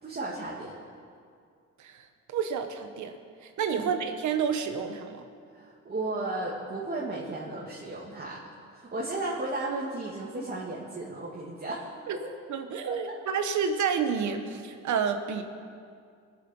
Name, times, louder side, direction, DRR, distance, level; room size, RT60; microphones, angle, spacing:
voice 1, 0.0-0.7 3.7-3.9 5.5-11.9 12.8-13.2, right 2 dB, 35° right, -5 dB, 2.4 m, -35 dB
voice 2, 2.3-3.1 3.6-5.2 12.1-12.2 12.5-15.4, right 6 dB, 75° right, 7 dB, 1.3 m, -29 dB
22.0 x 7.5 x 5.5 m, 2.2 s
cardioid pair, 90°, 30 cm